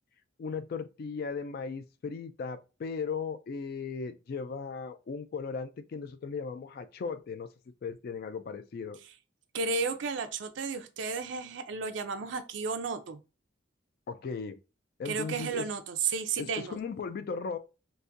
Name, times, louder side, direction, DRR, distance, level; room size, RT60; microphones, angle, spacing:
voice 1, 0.4-7.5 7.8-9.0 14.1-14.6 15.0-15.7 16.4-17.6, left 5 dB, 50° left, 0.3 m, -37 dB
voice 2, 9.5-13.2 15.0-16.8, right 4 dB, 65° right, 0.4 m, -33 dB
3.9 x 2.5 x 2.5 m
head